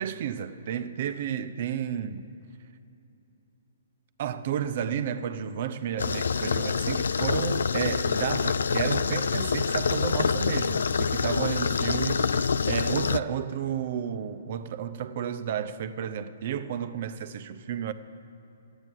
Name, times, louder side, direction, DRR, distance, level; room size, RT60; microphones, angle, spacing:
voice 1, 0.0-2.2 4.2-17.9, right 8 dB, 50° right, 0.8 m, -32 dB
sound 1, 6.0-13.2, left 5 dB, 80° left, 0.4 m, -26 dB
14.0 x 8.9 x 9.3 m
hypercardioid pair, 145°, 0 cm